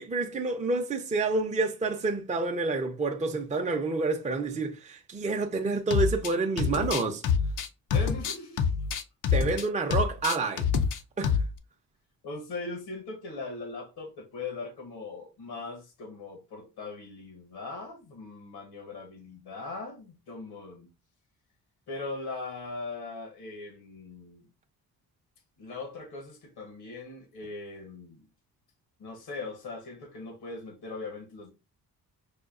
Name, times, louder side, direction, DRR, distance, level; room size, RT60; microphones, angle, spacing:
voice 1, 0.0-7.2 9.3-10.7 11.2-11.4, right 3 dB, 20° right, 0.6 m, -28 dB
sound 1, 5.9-6.3 6.6-9.6 9.9-11.0 11.2-11.5, left 6 dB, 55° left, 0.5 m, -26 dB
voice 2, 7.9-8.7 12.2-20.9 21.9-24.4 25.6-28.3 29.0-31.5, left 3 dB, 80° left, 1.1 m, -40 dB
5.0 x 2.2 x 2.4 m
cardioid pair, 80°, 37 cm